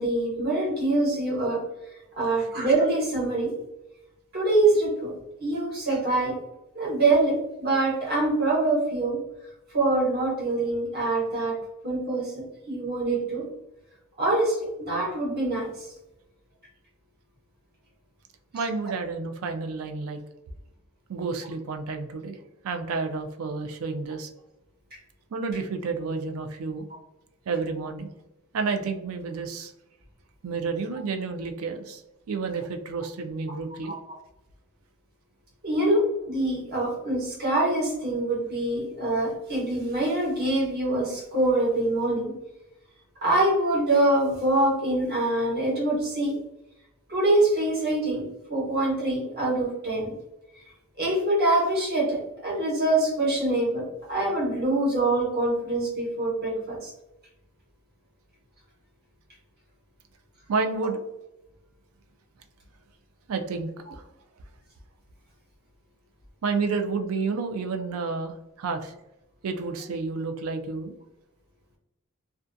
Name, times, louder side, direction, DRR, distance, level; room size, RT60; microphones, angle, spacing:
voice 1, 0.0-1.6 2.2-3.5 4.3-5.1 5.4-6.3 6.7-9.2 9.7-11.6 11.8-13.4 14.2-15.9 35.6-42.3 43.2-46.3 47.1-48.2 48.5-50.1 51.0-56.9, right 2 dB, 45° right, -4 dB, 1.0 m, -24 dB
voice 2, 18.5-20.2 21.1-22.4 22.6-24.3 25.3-26.9 27.5-28.1 28.5-29.7 30.4-32.0 32.3-33.9 60.5-61.0 63.3-64.0 66.4-68.9 69.4-70.9, right 4 dB, 70° right, 6 dB, 0.4 m, -30 dB
2.4 x 2.2 x 2.5 m, 0.92 s
head